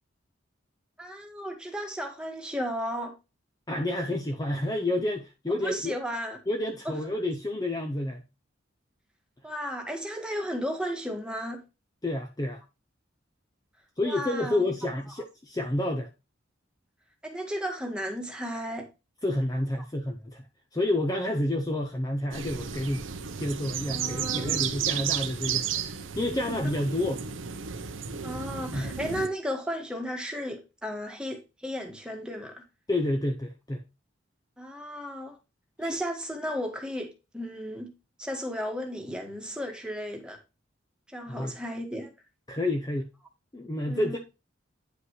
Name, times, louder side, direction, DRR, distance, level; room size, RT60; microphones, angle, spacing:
voice 1, 1.0-3.1 5.5-6.4 6.9-7.0 9.4-11.6 14.0-14.7 17.2-18.9 23.9-24.7 26.3-26.6 28.2-32.6 34.6-35.4 35.8-37.9 38.2-40.4 41.1-42.1 43.9-44.2, equal, 5° right, 1.6 m, -34 dB
voice 2, 3.7-6.0 6.5-8.2 12.0-12.6 14.0-16.1 19.2-20.5 20.7-23.0 23.4-27.2 28.7-28.9 32.9-33.8 35.8-36.0 41.3-41.5 42.5-43.1 43.5-44.2, left 1 dB, 20° left, 0.7 m, -29 dB
sound 1, 22.3-29.3, right 7 dB, 85° right, 0.8 m, -33 dB
9.7 x 5.2 x 3.1 m
head